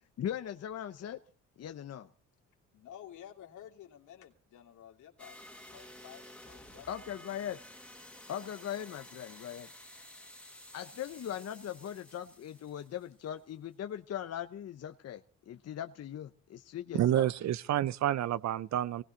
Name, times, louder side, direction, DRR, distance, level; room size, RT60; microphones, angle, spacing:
voice 1, 0.2-1.2 1.6-2.1 6.9-7.6 8.3-9.7 10.7-17.3, left 10 dB, 55° left, 0.9 m, -40 dB
voice 2, 2.7-6.9, left 10 dB, 80° left, 2.9 m, -52 dB
sound 1, 5.2-13.5, left 1 dB, 5° left, 2.3 m, -52 dB
voice 3, 16.9-19.0, right 12 dB, 65° right, 0.7 m, -29 dB
18.5 x 17.0 x 4.0 m
cardioid pair, 90°, 30 cm